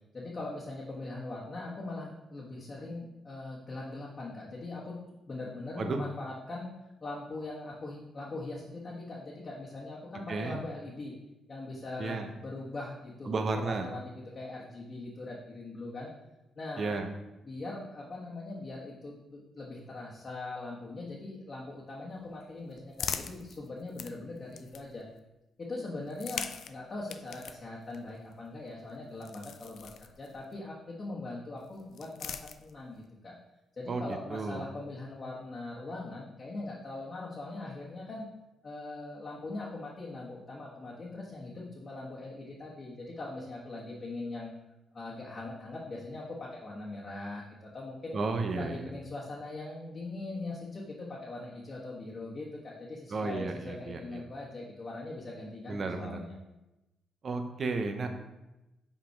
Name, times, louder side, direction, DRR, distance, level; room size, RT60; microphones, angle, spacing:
voice 1, 0.1-4.9 5.3-6.7 7.0-11.1 11.5-16.1 16.6-17.0 17.4-25.0 25.6-33.4 33.8-38.3 38.6-44.5 44.9-48.1 48.5-56.4, left 2 dB, 45° left, -5 dB, 1.3 m, -41 dB
voice 2, 13.3-13.9 16.8-17.1 33.9-34.0 34.3-34.7 48.1-48.9 53.1-54.2 55.7-56.2 57.2-58.1, right 3 dB, 55° right, 5 dB, 0.8 m, -33 dB
sound 1, 22.1-25.2 26.0-30.6 31.6-33.1, left 7 dB, 70° left, 0.4 m, -43 dB
5.4 x 4.4 x 4.6 m, 0.97 s
supercardioid pair, 55°, 0 cm